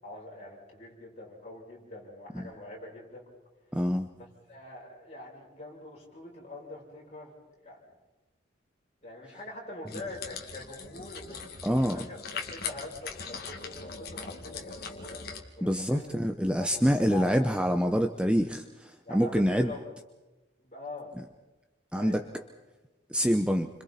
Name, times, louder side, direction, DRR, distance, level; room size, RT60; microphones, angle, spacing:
voice 1, 0.0-3.3 4.1-7.3 7.6-7.8 9.0-12.2 12.5-15.2 15.6-16.2 16.6-17.3 19.0-19.8 20.6-21.1 21.9-22.4, left 1 dB, 35° left, -4 dB, 7.8 m, -44 dB
voice 2, 3.7-4.1 11.6-12.0 15.6-19.7 21.9-22.2 23.1-23.7, equal, 5° right, 6 dB, 0.8 m, -26 dB
sound 1, 9.9-15.4, left 5 dB, 55° left, 2.3 m, -40 dB
30.0 x 26.0 x 4.3 m, 1.1 s
head